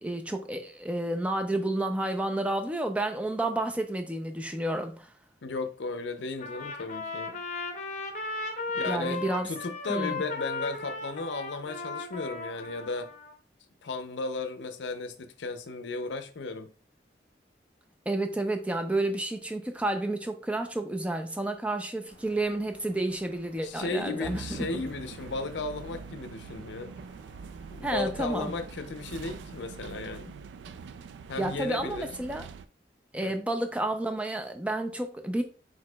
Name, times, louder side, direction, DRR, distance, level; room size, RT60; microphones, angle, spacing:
voice 1, 0.0-5.1 8.9-9.5 9.9-10.2 18.1-24.7 27.8-28.5 31.4-32.5 33.1-35.4, right 1 dB, 5° right, 0.4 m, -30 dB
voice 2, 5.4-7.4 8.7-13.1 13.8-16.7 23.6-26.9 27.7-30.3 31.3-32.1 33.2-33.3, left 3 dB, 80° left, 0.5 m, -35 dB
Trumpet, 6.4-13.3, left 3 dB, 40° left, 0.7 m, -36 dB
sound 1, 22.1-30.3, equal, 60° right, 1.5 m, -56 dB
sound 2, 24.2-32.7, right 5 dB, 75° right, 0.3 m, -43 dB
4.8 x 4.0 x 2.2 m
head